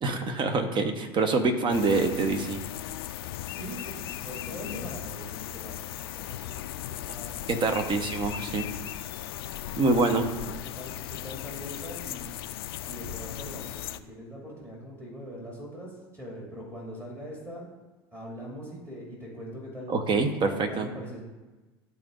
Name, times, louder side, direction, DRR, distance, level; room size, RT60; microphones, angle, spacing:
voice 1, 0.0-2.6 7.5-8.7 9.8-10.3 19.9-20.9, right 3 dB, 35° right, 6 dB, 1.1 m, -25 dB
sound 1, 1.7-14.0, left 13 dB, 65° left, 0.4 m, -37 dB
voice 2, 3.5-5.8 6.0-7.5 7.8-8.0 9.6-9.9 10.2-12.3 12.9-17.7 18.1-19.9 20.6-21.2, equal, 20° right, -4 dB, 2.7 m, -42 dB
12.0 x 4.0 x 3.8 m, 1.2 s
figure-of-eight pair, 70°, 13 cm